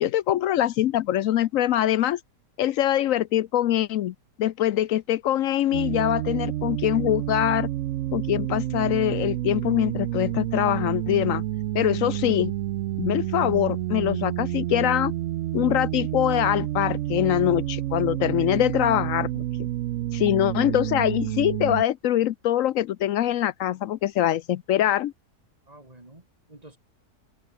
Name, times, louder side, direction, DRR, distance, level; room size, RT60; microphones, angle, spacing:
voice 1, 0.0-2.2 2.6-7.7 8.1-11.4 11.7-12.5 13.0-15.1 15.5-19.7 20.1-25.1, left 12 dB, 70° left, 0.9 m, -23 dB
sound 1, 5.7-21.8, right 13 dB, 70° right, 0.8 m, -29 dB
voice 2, 25.7-26.8, right 2 dB, 25° right, 3.9 m, -50 dB
open air
omnidirectional pair, 1.6 m